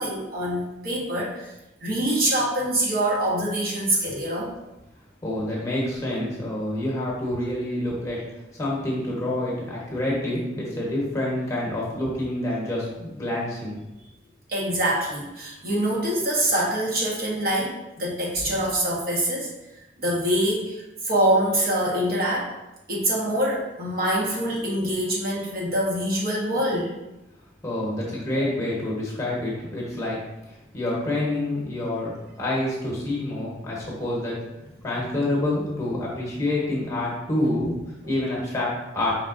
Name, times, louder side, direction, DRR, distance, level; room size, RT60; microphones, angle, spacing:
voice 1, 0.0-1.5 1.8-4.5 14.5-19.5 20.0-22.5 22.9-26.9, right 1 dB, 55° right, -4 dB, 1.1 m, -25 dB
voice 2, 5.2-8.2 8.5-13.8 27.6-30.2 30.5-34.4 34.8-37.7 38.1-39.1, left 1 dB, 15° left, -4 dB, 1.0 m, -27 dB
4.9 x 3.6 x 2.5 m, 0.98 s
head